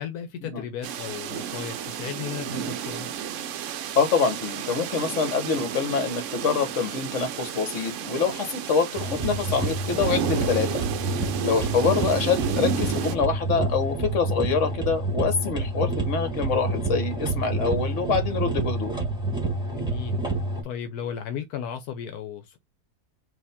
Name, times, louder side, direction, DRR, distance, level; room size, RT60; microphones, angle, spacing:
voice 1, 0.0-3.1 11.6-11.9 15.7-15.9 19.7-22.6, left 8 dB, 85° left, 1.2 m, -35 dB
sound 1, 0.8-13.2, right 9 dB, 65° right, 0.8 m, -32 dB
voice 2, 3.9-10.8 11.4-18.9, left 5 dB, 55° left, 1.5 m, -25 dB
sound 2, 9.0-20.6, right 2 dB, 5° right, 1.3 m, -28 dB
5.0 x 2.9 x 3.5 m
omnidirectional pair, 1.6 m